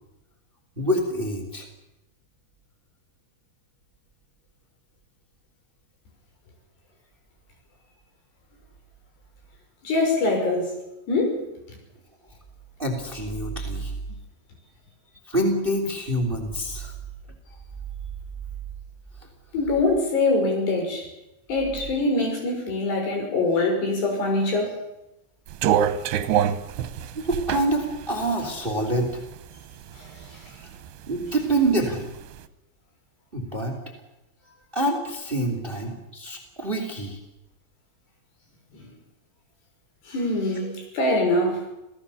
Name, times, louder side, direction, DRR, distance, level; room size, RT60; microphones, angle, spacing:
voice 1, 0.8-1.7 12.8-13.9 15.3-16.9 27.1-29.2 31.1-32.1 33.3-33.7 34.7-37.2 40.6-40.7, right 1 dB, 15° right, 5 dB, 2.8 m, -26 dB
voice 2, 9.8-10.7 11.1-11.4 19.5-21.1 21.5-24.8 30.0-30.1 38.7-38.9 40.1-41.6, left 2 dB, 75° left, 3 dB, 7.9 m, -23 dB
sound 1, 25.5-29.5 29.9-30.9 31.3-32.3, right 9 dB, 80° right, 3.3 m, -25 dB
27.0 x 17.5 x 7.1 m, 0.93 s
omnidirectional pair, 4.8 m